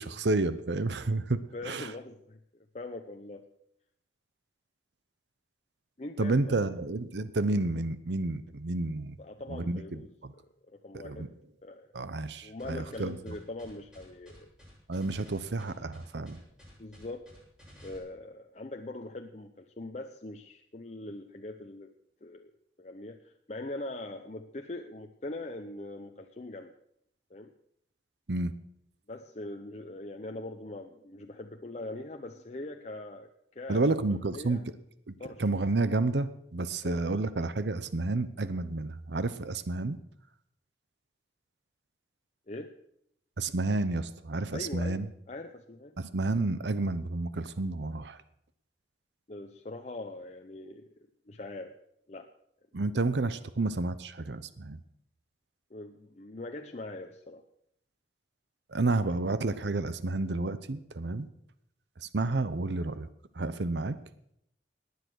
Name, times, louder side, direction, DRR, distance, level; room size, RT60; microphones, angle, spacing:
voice 1, 0.0-1.9 6.2-9.2 9.5-10.3 10.9-11.3 11.9-13.2 14.9-16.4 28.3-28.5 33.7-34.6 35.4-40.0 43.4-45.1 46.0-48.2 52.7-54.8 58.7-61.3 62.0-63.1 63.4-64.0, right 2 dB, 80° right, 14 dB, 0.8 m, -30 dB
voice 2, 1.5-3.5 6.0-6.7 9.2-10.1 10.7-11.3 11.6-11.9 12.4-14.5 16.8-17.3 17.8-21.9 22.2-22.5 22.8-26.7 27.3-27.5 29.1-34.6 35.2-35.4 36.8-37.0 42.5-42.7 44.5-46.0 49.3-50.9 51.3-51.7 52.1-52.3 55.7-57.4, left 2 dB, 40° left, 4 dB, 0.7 m, -42 dB
sound 1, 12.6-18.0, equal, 5° right, 7.6 m, -53 dB
18.5 x 9.6 x 6.3 m, 0.75 s
head